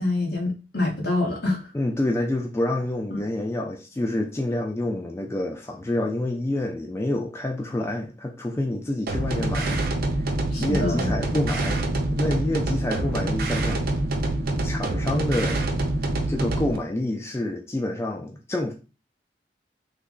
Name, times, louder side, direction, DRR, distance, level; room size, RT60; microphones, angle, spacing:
voice 1, 0.0-1.7 3.1-3.2 10.5-11.1, left 2 dB, 65° left, 1.1 m, -26 dB
voice 2, 1.7-9.9 10.6-13.8 14.6-15.7 16.3-18.7, left 1 dB, 15° left, 0.3 m, -28 dB
sound 1, 9.1-16.8, right 2 dB, 55° right, 0.6 m, -26 dB
3.3 x 2.0 x 3.6 m
head